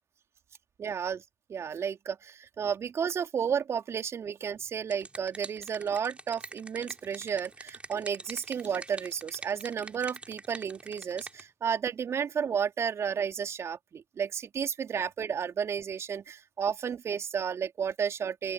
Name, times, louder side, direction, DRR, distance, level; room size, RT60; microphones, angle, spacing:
voice 1, 0.8-1.2 1.5-18.5, right 7 dB, 40° right, 3.3 m, -32 dB
sound 1, 4.6-11.4, right 2 dB, 15° right, 4.0 m, -45 dB
open air
figure-of-eight pair, 60°, 7 cm